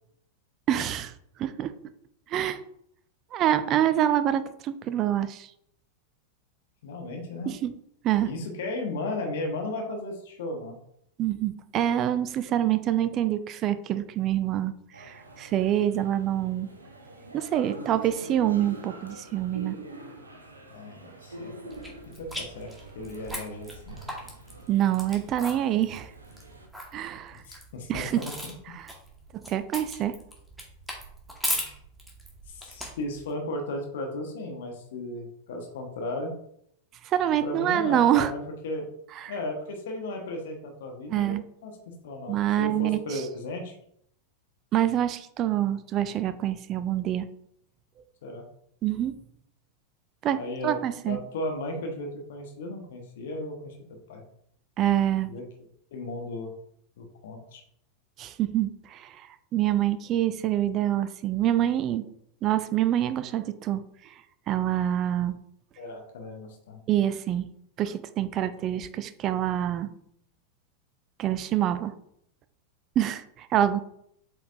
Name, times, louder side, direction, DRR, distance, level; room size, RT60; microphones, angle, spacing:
voice 1, 0.7-1.1 1.4-1.7 2.3-2.6 3.3-5.5 7.5-7.7 8.0-8.3 11.2-16.7 17.3-19.8 24.7-26.1 26.9-27.4 27.9-28.2 28.7-28.9 29.3-30.2 37.0-38.3 41.1-41.4 42.3-43.0 44.7-47.3 48.8-49.2 50.2-51.2 54.8-55.3 58.2-59.3 59.5-62.0 62.4-63.8 64.5-65.4 66.9-67.5 67.8-69.9 71.2-71.9 73.0-73.8, right 11 dB, 35° right, 13 dB, 0.5 m, -26 dB
voice 2, 6.8-7.5 8.2-10.8 20.7-21.5 22.2-22.7 22.9-24.0 27.4-28.6 31.6-31.7 32.5-36.3 37.4-38.4 38.6-38.9 39.3-41.7 42.0-43.7 48.2-48.4 50.3-50.8 51.0-53.7 54.1-54.2 55.3-55.4 55.9-56.5 57.0-57.6 65.8-66.8, left 2 dB, 55° left, 2 dB, 1.3 m, -35 dB
sound 1, 14.9-26.7, right 2 dB, 80° right, 1.0 m, -45 dB
sound 2, 21.7-33.3, equal, 5° right, 1.6 m, -38 dB
7.9 x 4.9 x 2.6 m, 0.71 s
figure-of-eight pair, 90°, 0 cm